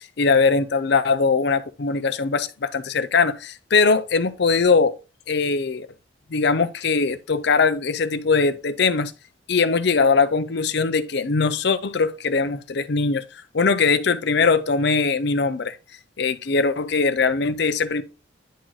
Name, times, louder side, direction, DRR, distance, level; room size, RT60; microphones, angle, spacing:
voice 1, 0.0-5.0 5.3-5.9 6.3-9.1 9.5-15.8 16.2-18.0, left 4 dB, 55° left, 0.5 m, -21 dB
10.0 x 3.9 x 3.1 m
head